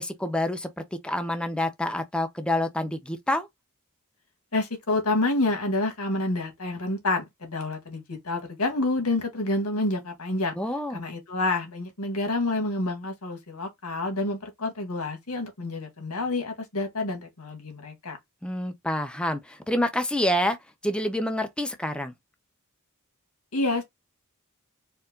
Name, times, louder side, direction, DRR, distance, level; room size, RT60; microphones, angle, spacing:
voice 1, 0.0-3.5 10.6-11.0 18.4-20.6 20.8-22.1, left 1 dB, 5° left, 0.6 m, -27 dB
voice 2, 4.5-10.5 10.9-18.2 23.5-23.8, left 2 dB, 85° left, 1.8 m, -28 dB
4.5 x 2.7 x 3.7 m
head